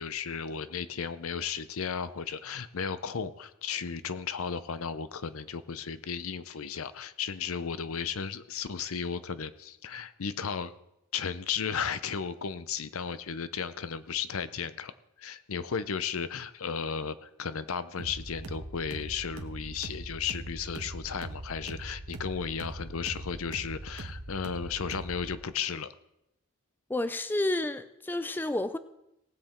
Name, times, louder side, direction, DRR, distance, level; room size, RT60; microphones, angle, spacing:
voice 1, 0.0-10.7 11.1-14.9 15.2-25.9, left 6 dB, 70° left, 14 dB, 0.7 m, -34 dB
sound 1, 18.0-25.4, right 2 dB, 75° right, 1.2 m, -41 dB
voice 2, 26.9-28.8, left 2 dB, 10° left, 13 dB, 0.3 m, -30 dB
18.5 x 7.9 x 4.4 m, 0.84 s
head